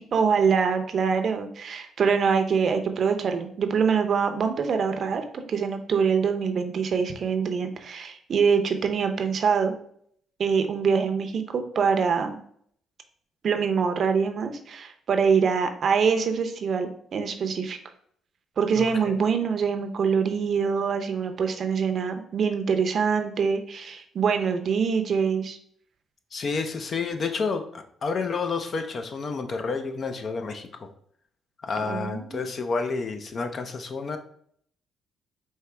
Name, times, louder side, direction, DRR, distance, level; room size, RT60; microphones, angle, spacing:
voice 1, 0.1-9.7 10.4-12.4 13.4-17.8 18.6-25.6 31.8-32.5, right 6 dB, 55° right, 6 dB, 0.6 m, -24 dB
voice 2, 18.8-19.1 26.3-30.9 31.6-34.2, left 4 dB, 50° left, 6 dB, 0.6 m, -30 dB
4.7 x 2.9 x 3.3 m, 0.64 s
cardioid pair, 90°, 0 cm